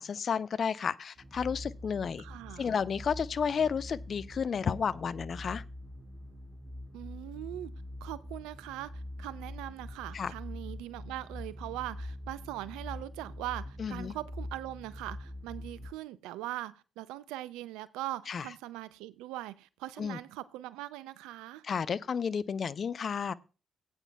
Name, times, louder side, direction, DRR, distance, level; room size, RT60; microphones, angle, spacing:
voice 1, 0.0-2.2 2.6-5.6 10.1-10.3 13.8-14.1 18.3-18.4 20.0-20.2 21.6-23.3, left 6 dB, 50° left, 0.5 m, -32 dB
sound 1, 1.2-15.9, left 1 dB, 45° right, 3.9 m, -44 dB
voice 2, 2.2-2.7 6.9-7.7 8.0-21.6, right 15 dB, 75° right, 0.4 m, -41 dB
17.0 x 8.9 x 2.3 m
hypercardioid pair, 40°, 0 cm